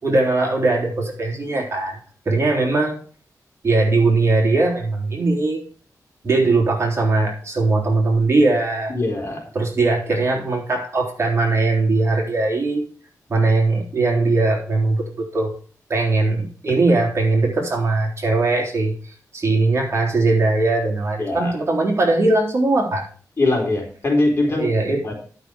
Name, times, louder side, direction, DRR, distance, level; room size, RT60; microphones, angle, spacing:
voice 1, 0.0-2.0 2.3-3.0 3.6-5.6 6.2-9.0 9.6-12.8 13.3-15.5 15.9-18.9 19.3-23.1 24.5-25.0, right 3 dB, 45° right, -1 dB, 3.7 m, -20 dB
voice 2, 8.9-9.4 21.2-21.5 23.4-24.7 25.0-25.1, left 2 dB, 40° left, -1 dB, 4.2 m, -21 dB
11.5 x 6.3 x 5.0 m, 0.42 s
wide cardioid pair, 100°, 6 cm